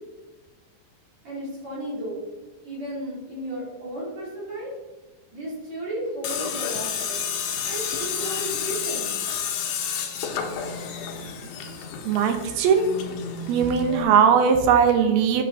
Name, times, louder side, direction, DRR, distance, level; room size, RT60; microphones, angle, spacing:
voice 1, 1.2-2.3 2.6-4.7 5.3-7.2 7.6-9.2, right 1 dB, 45° right, -7 dB, 4.3 m, -34 dB
Tools, 6.2-14.0, left 7 dB, 70° left, 2.3 m, -30 dB
voice 2, 12.1-12.9 13.5-15.4, right 7 dB, 75° right, 7 dB, 2.8 m, -19 dB
8.4 x 6.8 x 4.0 m, 1.2 s
omnidirectional pair, 4.8 m